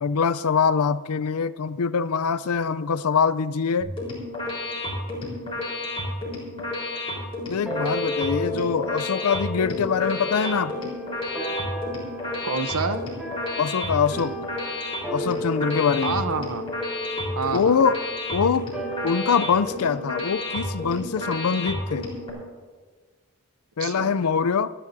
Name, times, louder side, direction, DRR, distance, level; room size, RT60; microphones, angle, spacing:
voice 1, 0.0-3.9 7.5-10.9 13.6-14.4 15.1-16.2 17.5-18.0 18.3-18.7 19.0-22.1 23.8-24.7, left 6 dB, 90° left, 16 dB, 0.5 m, -23 dB
sound 1, 3.8-22.3, left 1 dB, 25° left, 4.0 m, -32 dB
sound 2, 7.6-22.4, left 1 dB, 5° right, 2.1 m, -34 dB
voice 2, 12.4-13.0 16.0-16.7 17.4-17.8 23.8-24.1, right 4 dB, 80° right, 9 dB, 0.7 m, -28 dB
27.0 x 10.0 x 2.7 m, 1.4 s
head